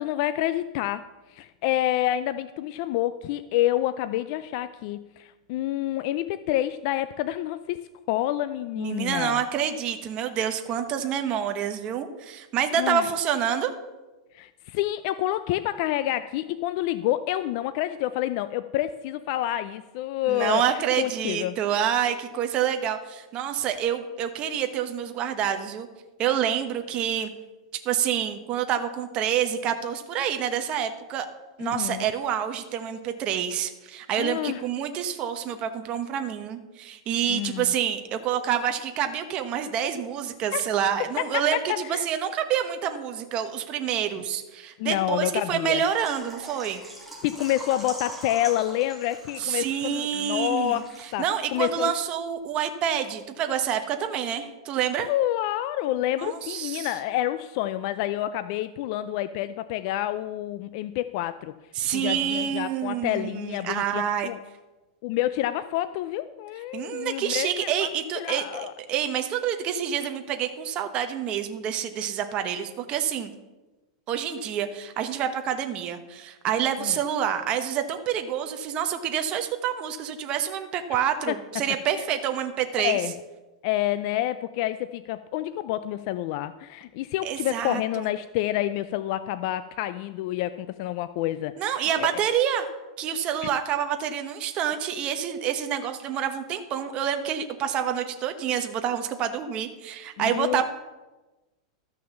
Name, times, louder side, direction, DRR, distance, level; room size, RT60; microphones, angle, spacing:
voice 1, 0.0-9.4 12.8-13.1 14.3-21.6 31.6-32.1 34.2-34.6 37.3-37.7 40.5-40.6 41.2-41.3 41.7-42.1 44.8-45.8 47.2-50.8 51.1-51.2 51.5-51.9 55.1-61.5 61.9-64.4 65.0-67.9 68.2-68.7 76.8-76.9 82.8-83.1 83.6-92.2 100.2-100.6, left 14 dB, 50° left, 13 dB, 0.4 m, -28 dB
voice 2, 8.7-13.7 20.3-25.9 26.2-27.3 27.8-31.3 31.6-46.8 49.4-55.1 56.2-56.9 61.7-64.3 66.7-73.3 74.1-83.0 87.2-88.1 91.6-92.7 93.0-100.6, right 9 dB, 30° right, 7 dB, 1.1 m, -27 dB
Water / Liquid, 45.8-51.4 51.7-51.8 52.2-52.3, right 1 dB, ahead, 2.5 m, -43 dB
13.0 x 6.3 x 7.1 m, 1.1 s
supercardioid pair, 150°, 3 cm